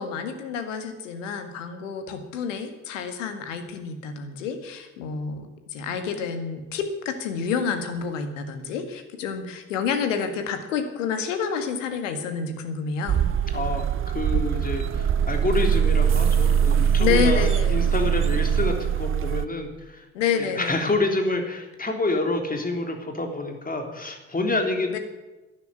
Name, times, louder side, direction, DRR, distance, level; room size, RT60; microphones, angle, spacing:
voice 1, 0.0-13.2 17.0-17.9 20.1-20.8 24.9-25.0, left 6 dB, 75° left, 7 dB, 1.8 m, -28 dB
sound 1, 13.1-19.5, right 8 dB, 35° right, 0.8 m, -22 dB
voice 2, 13.5-20.1 20.4-24.9, left 2 dB, 20° left, 4 dB, 3.6 m, -28 dB
12.5 x 11.0 x 9.7 m, 1.1 s
figure-of-eight pair, 50°, 38 cm